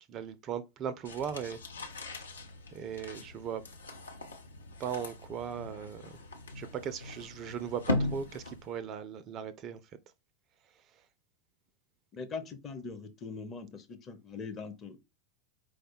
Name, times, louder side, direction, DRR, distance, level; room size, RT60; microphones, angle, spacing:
voice 1, 0.1-1.6 2.7-3.6 4.8-6.1 6.6-9.8, right 8 dB, 35° right, 0.4 m, -38 dB
sound 1, 1.1-8.8, left 2 dB, 70° left, 0.7 m, -39 dB
voice 2, 12.1-15.0, left 4 dB, 25° left, 0.7 m, -42 dB
4.8 x 2.1 x 4.3 m
figure-of-eight pair, 90°, 0 cm